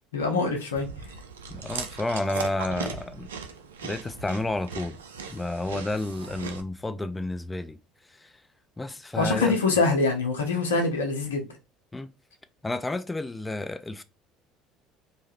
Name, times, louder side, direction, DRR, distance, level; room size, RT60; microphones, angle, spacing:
voice 1, 0.1-0.9 9.2-11.5, left 3 dB, 85° left, 0.7 m, -24 dB
Chewing mastication, 0.7-6.6, right 6 dB, 85° right, 0.3 m, -38 dB
voice 2, 1.5-3.3 3.8-5.0 5.3-7.8 8.1-8.3 8.8-9.6 11.9-12.1 12.6-14.0, left 2 dB, 15° left, 0.3 m, -31 dB
3.1 x 2.3 x 2.8 m
hypercardioid pair, 65°, 0 cm